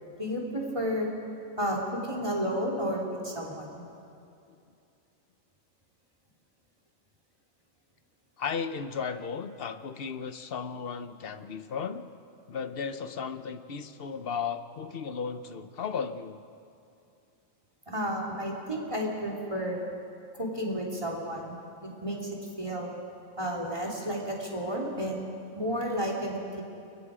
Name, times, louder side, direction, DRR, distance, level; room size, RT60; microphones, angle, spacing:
voice 1, 0.2-1.1 1.6-3.8 17.9-19.8 20.4-21.4 21.8-22.3 22.6-22.9 23.4-25.2 25.6-26.6, equal, 20° right, 0 dB, 3.0 m, -32 dB
voice 2, 8.4-12.1 12.5-16.4 18.3-18.4, left 6 dB, 50° left, 10 dB, 1.0 m, -35 dB
29.0 x 22.5 x 5.0 m, 2.6 s
omnidirectional pair, 1.4 m